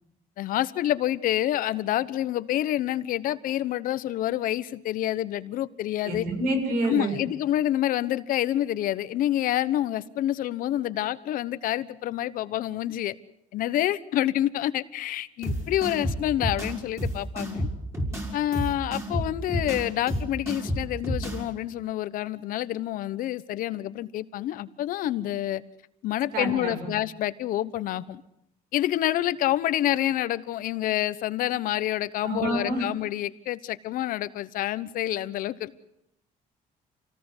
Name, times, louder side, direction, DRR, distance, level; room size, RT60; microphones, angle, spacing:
voice 1, 0.4-6.3 6.9-13.1 13.5-17.7 18.3-25.6 26.0-28.2 28.7-35.8, left 13 dB, 70° left, 1.2 m, -28 dB
voice 2, 6.0-7.2 26.3-26.8 32.2-32.8, right 1 dB, 80° right, 7.5 m, -27 dB
sound 1, 15.4-21.4, equal, 20° right, 5.3 m, -30 dB
28.0 x 18.5 x 8.1 m
cardioid pair, 150°, 15 cm